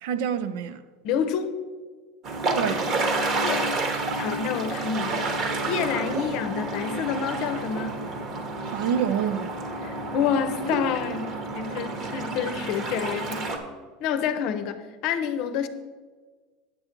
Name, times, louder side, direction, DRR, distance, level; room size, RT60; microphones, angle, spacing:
voice 1, 0.0-0.8 2.5-2.9 8.6-9.6, right 8 dB, 70° right, 0.5 m, -27 dB
voice 2, 1.0-1.6 3.4-3.8 4.2-8.0 9.8-13.4 14.0-15.7, left 7 dB, 50° left, 0.7 m, -28 dB
sound 1, 2.2-13.6, right 2 dB, 35° right, 1.1 m, -29 dB
9.0 x 7.7 x 4.5 m
supercardioid pair, 160°, 0 cm